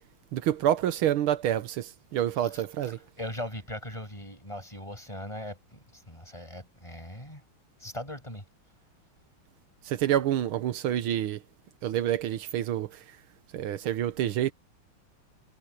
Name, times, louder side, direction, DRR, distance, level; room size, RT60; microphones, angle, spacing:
voice 1, 0.3-3.0 9.9-11.4 11.8-12.9 13.5-14.5, right 11 dB, 85° right, 1.8 m, -27 dB
voice 2, 2.4-7.4 7.8-8.4, left 1 dB, 15° left, 7.0 m, -40 dB
omnidirectional pair, 2.3 m